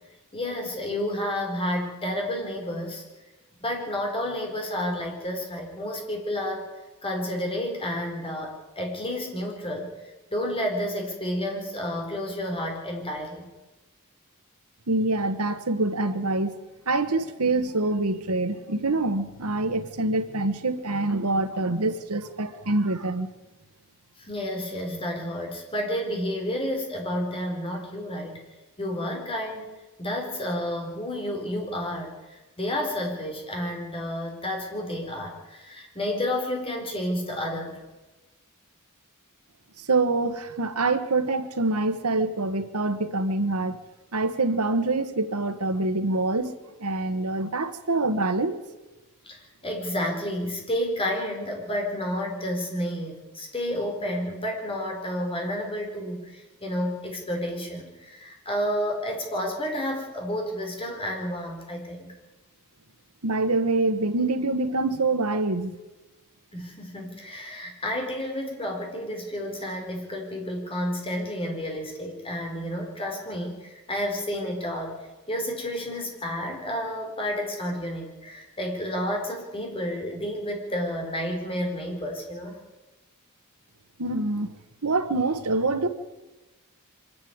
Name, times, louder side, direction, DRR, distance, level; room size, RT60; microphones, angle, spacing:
voice 1, 0.3-3.0 3.6-6.7 7.0-13.5 24.2-28.4 28.8-29.7 30.0-37.8 49.2-62.2 66.5-75.0 75.3-82.6, equal, 25° left, 4.6 m, -31 dB
voice 2, 14.9-16.5 16.9-23.3 39.8-43.8 44.1-48.6 63.2-65.8 84.0-84.6 84.8-85.9, right 2 dB, 90° right, 1.4 m, -25 dB
24.5 x 11.5 x 9.5 m
head